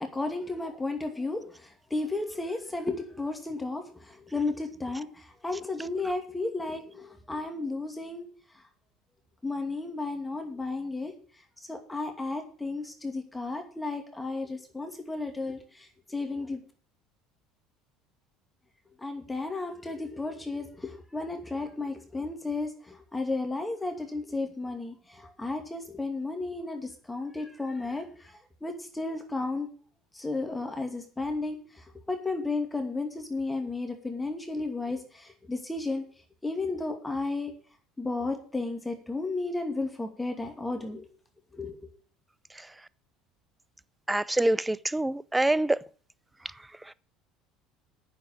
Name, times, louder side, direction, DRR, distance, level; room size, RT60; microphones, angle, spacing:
voice 1, 0.1-8.3 9.4-11.1 11.7-16.6 19.0-29.7 30.1-36.0 36.4-37.5 38.0-41.1 41.5-41.8, left 3 dB, 10° left, 2.5 m, -33 dB
voice 2, 44.1-45.8, right 1 dB, 10° right, 0.6 m, -25 dB
9.3 x 7.2 x 8.8 m
hypercardioid pair, 65°, 0 cm